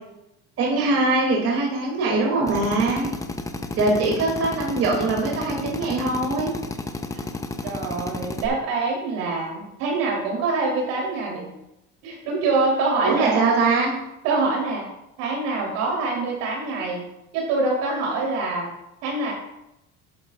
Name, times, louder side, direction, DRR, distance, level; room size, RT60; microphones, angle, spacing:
voice 1, 0.6-3.1 3.8-6.5 13.0-13.9, right 3 dB, 50° right, -2 dB, 2.7 m, -22 dB
Drill, 2.5-8.5, left 2 dB, 10° left, 0.7 m, -32 dB
voice 2, 7.6-11.5 12.0-13.4 14.2-14.9 15.2-17.0 17.3-18.7 19.0-19.3, right 3 dB, 80° right, -1 dB, 3.5 m, -25 dB
10.5 x 9.7 x 2.5 m, 0.88 s
cardioid pair, 115°, 30 cm